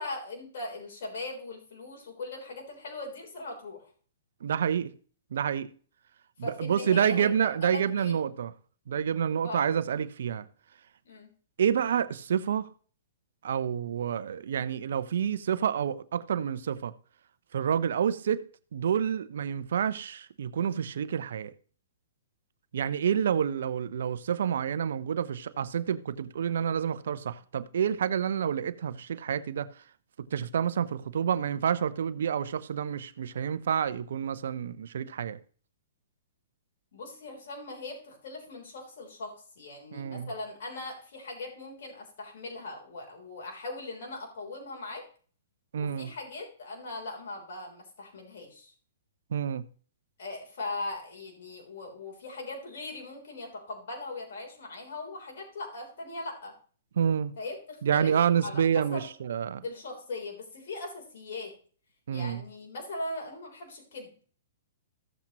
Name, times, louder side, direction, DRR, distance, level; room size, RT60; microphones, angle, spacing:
voice 1, 0.0-3.8 6.4-7.3 7.6-8.2 9.4-9.6 11.0-11.3 36.9-45.0 45.7-48.7 50.2-56.5 57.4-58.1 58.4-59.1 59.6-61.5 62.1-64.1, left 2 dB, 65° left, 3.5 m, -40 dB
voice 2, 4.4-4.9 5.3-5.7 6.4-8.5 8.9-10.5 11.6-12.7 13.4-16.9 17.5-18.4 18.7-21.5 22.7-29.7 30.2-35.4 39.9-40.3 45.7-46.1 49.3-49.7 57.0-57.3 57.8-59.6 62.1-62.4, right 8 dB, 70° right, 0.6 m, -28 dB
14.5 x 7.3 x 3.0 m
hypercardioid pair, 135°, 0 cm